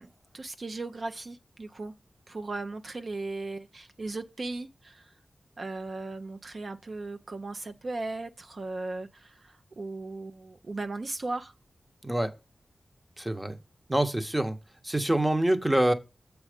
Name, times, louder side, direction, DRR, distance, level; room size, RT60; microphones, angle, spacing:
voice 1, 0.0-1.9 2.3-5.1 5.6-11.5, right 2 dB, 55° right, 0.6 m, -37 dB
voice 2, 12.0-12.3 13.2-13.6 13.9-14.6 14.8-15.9, right 1 dB, 15° right, 1.0 m, -25 dB
7.4 x 4.8 x 5.0 m
wide cardioid pair, 70°, 0 cm